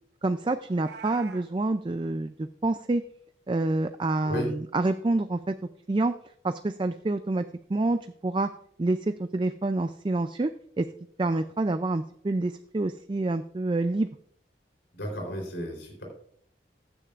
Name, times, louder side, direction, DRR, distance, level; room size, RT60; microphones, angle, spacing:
voice 1, 0.2-3.0 3.5-5.5 5.9-6.1 6.4-7.4 7.7-8.5 8.8-10.9 11.2-14.1, right 2 dB, 25° right, 9 dB, 0.4 m, -27 dB
Meow, 0.6-1.5, right 6 dB, 70° right, 1.0 m, -44 dB
voice 2, 14.9-16.0, equal, 85° left, 1 dB, 3.7 m, -33 dB
15.0 x 9.9 x 2.5 m, 0.65 s
head